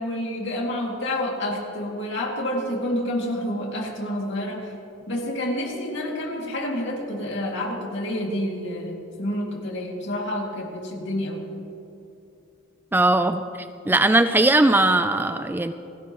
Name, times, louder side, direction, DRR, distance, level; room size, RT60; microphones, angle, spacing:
voice 1, 0.0-4.7 5.1-11.5 13.8-13.9, left 1 dB, 60° left, -1 dB, 2.5 m, -28 dB
voice 2, 12.9-13.4 13.9-15.7, right 2 dB, 10° right, 9 dB, 0.4 m, -19 dB
29.5 x 11.5 x 3.1 m, 2.8 s
head